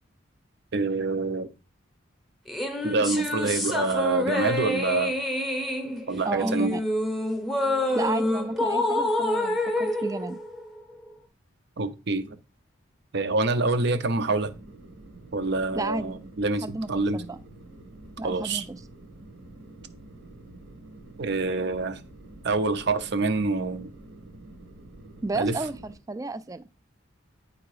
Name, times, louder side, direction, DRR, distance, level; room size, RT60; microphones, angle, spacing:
voice 1, 0.7-1.5 2.8-5.1 6.1-6.7 11.8-12.4 13.1-14.5 15.3-17.2 18.2-18.6 21.2-22.0 22.4-23.9 25.3-25.6, right 3 dB, 55° right, 0.7 m, -26 dB
sound 1, 2.5-11.1, left 1 dB, ahead, 0.8 m, -27 dB
voice 2, 6.2-6.8 7.9-10.4 15.7-16.2 16.6-17.4 18.2-18.8 25.2-26.6, right 3 dB, 15° right, 0.3 m, -32 dB
sound 2, 14.3-26.0, right 2 dB, 80° right, 1.5 m, -47 dB
9.5 x 3.9 x 4.8 m
head